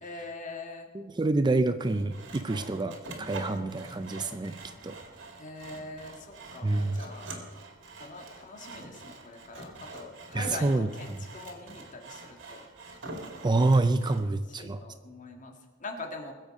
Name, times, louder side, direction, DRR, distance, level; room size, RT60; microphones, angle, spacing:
voice 1, 0.0-0.9 5.4-7.3 8.0-12.7 14.5-16.3, left 2 dB, 40° left, 3 dB, 1.8 m, -43 dB
voice 2, 0.9-4.6 4.8-5.0 6.6-7.0 10.3-11.2 13.4-14.8, right 2 dB, 20° right, 10 dB, 0.4 m, -27 dB
Sawing, 1.8-14.2, right 2 dB, 65° right, 2.3 m, -45 dB
21.0 x 7.6 x 5.3 m, 1.4 s
head